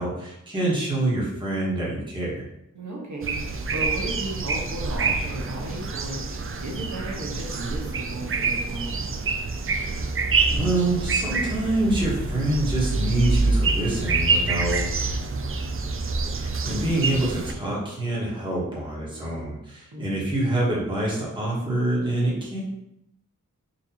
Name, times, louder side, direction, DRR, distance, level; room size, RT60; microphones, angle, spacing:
voice 1, 0.0-2.4 9.7-10.1 10.4-14.9 16.3-22.6, right 1 dB, 15° right, -6 dB, 1.4 m, -26 dB
voice 2, 2.7-9.2 19.9-20.3, right 2 dB, 60° right, -2 dB, 1.1 m, -35 dB
sound 1, 3.2-17.5, right 3 dB, 45° right, 0.4 m, -26 dB
4.2 x 2.6 x 2.8 m, 0.84 s
wide cardioid pair, 45°, 32 cm